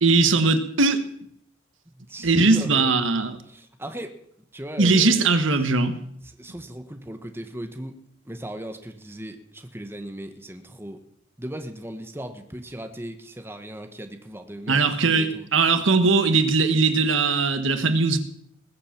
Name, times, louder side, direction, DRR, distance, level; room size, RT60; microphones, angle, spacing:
voice 1, 0.0-1.0 2.2-3.4 4.8-6.0 14.7-18.2, right 3 dB, 80° right, 9 dB, 1.4 m, -20 dB
voice 2, 1.9-2.9 3.5-4.1 4.5-5.3 6.4-8.0 8.2-11.0 11.4-15.5 18.1-18.2, right 1 dB, 10° right, 6 dB, 1.2 m, -37 dB
20.5 x 7.7 x 7.4 m, 0.69 s
head